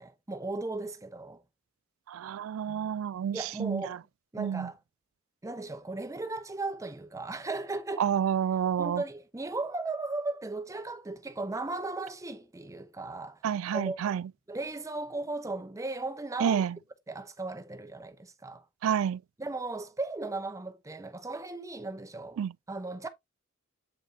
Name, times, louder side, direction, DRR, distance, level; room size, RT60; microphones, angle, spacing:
voice 1, 0.0-1.4 2.7-2.9 3.3-4.0 4.3-4.8 5.4-8.1 8.8-13.4 13.7-14.2 14.5-16.7 17.1-18.7 19.4-22.4 22.7-23.1, right 2 dB, 15° right, 0.7 m, -36 dB
voice 2, 2.1-3.8 4.4-4.7 8.0-9.0 13.4-14.2 16.4-16.7 18.8-19.2 22.4-22.5, right 8 dB, 80° right, 0.3 m, -29 dB
7.9 x 5.3 x 2.7 m
head